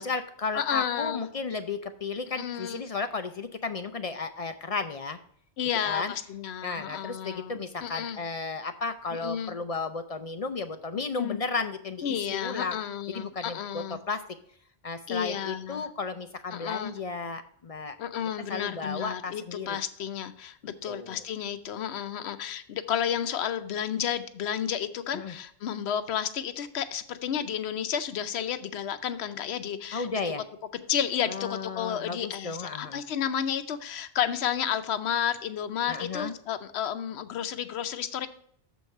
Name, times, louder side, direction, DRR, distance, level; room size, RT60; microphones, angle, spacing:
voice 1, 0.0-5.2 5.8-6.1 6.6-12.8 13.1-14.2 14.8-18.0 18.5-19.8 20.9-21.2 25.1-25.3 29.9-30.4 31.3-33.0 35.9-36.3, left 4 dB, 45° left, 9 dB, 0.5 m, -34 dB
voice 2, 0.5-1.2 2.4-2.8 5.6-8.2 9.2-9.6 11.2-11.4 12.0-14.0 15.1-15.8 16.5-17.0 18.0-30.1 30.9-38.3, left 9 dB, 85° left, 11 dB, 0.9 m, -31 dB
7.1 x 4.6 x 6.5 m, 0.63 s
omnidirectional pair, 1.1 m